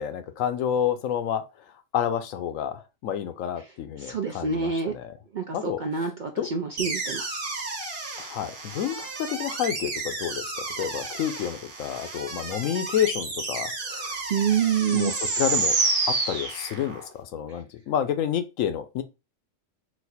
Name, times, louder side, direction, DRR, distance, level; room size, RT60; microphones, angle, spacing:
voice 1, 0.0-1.4 1.9-5.2 5.5-6.1 6.4-6.5 8.2-14.1 14.9-15.8 16.1-19.0, left 9 dB, 80° left, 1.0 m, -29 dB
voice 2, 4.0-4.9 5.3-7.4 14.3-15.1, right 6 dB, 60° right, 0.5 m, -27 dB
sound 1, 6.8-17.1, right 3 dB, 45° right, 1.2 m, -30 dB
4.2 x 2.5 x 4.1 m
omnidirectional pair, 1.3 m